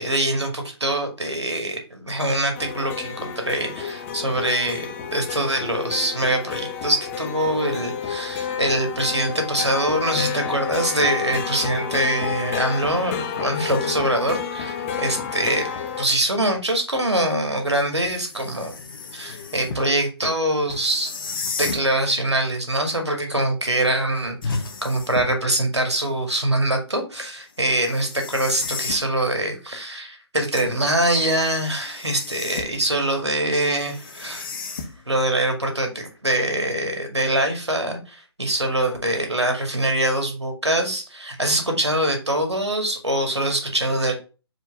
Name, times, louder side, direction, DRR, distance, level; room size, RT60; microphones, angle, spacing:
voice 1, 0.0-15.7 16.0-18.7 19.1-21.1 21.6-34.5 35.1-44.2, right 1 dB, 90° right, 4 dB, 2.1 m, -24 dB
sound 1, 2.5-16.0, left 7 dB, 30° left, 1.0 m, -30 dB
sound 2, 18.0-19.9 20.7-21.9 24.4-25.5 27.7-29.1 30.6-32.9 33.7-35.2, left 4 dB, 50° left, 1.4 m, -33 dB
4.8 x 4.7 x 4.3 m, 0.33 s
figure-of-eight pair, 130°, 14 cm